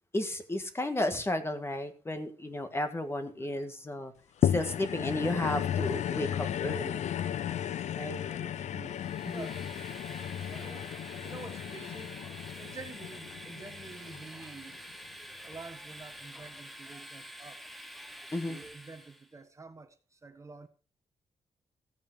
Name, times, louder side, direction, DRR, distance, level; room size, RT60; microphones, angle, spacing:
voice 1, 0.1-4.1 4.4-7.0 8.0-8.2 9.2-9.5 18.3-18.6, left 1 dB, 20° left, 1.8 m, -33 dB
sound 1, 4.4-14.9 15.5-15.6, left 10 dB, 75° left, 0.5 m, -34 dB
voice 2, 8.1-9.0 9.3-10.0 10.5-10.9 11.2-12.2 12.6-14.8 15.4-17.6 18.5-20.7, right 3 dB, 25° right, 1.2 m, -48 dB
Train, 8.8-19.3, equal, ahead, 1.1 m, -47 dB
15.0 x 8.8 x 4.7 m
wide cardioid pair, 135°, 12 cm